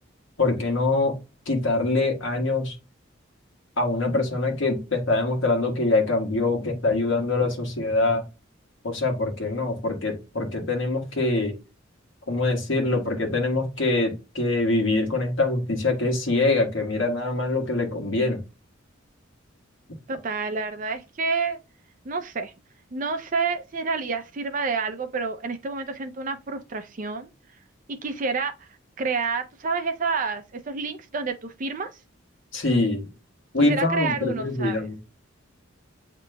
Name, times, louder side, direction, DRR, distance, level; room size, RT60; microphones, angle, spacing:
voice 1, 0.4-1.1 1.5-2.7 3.8-8.2 8.8-11.5 12.3-18.4 32.5-33.0 33.5-34.9, left 2 dB, 70° left, 1.4 m, -24 dB
voice 2, 20.1-21.6 22.0-22.5 22.9-27.3 27.9-28.5 29.0-31.9 33.6-34.9, right 4 dB, 40° right, 0.5 m, -29 dB
8.1 x 2.9 x 2.2 m
head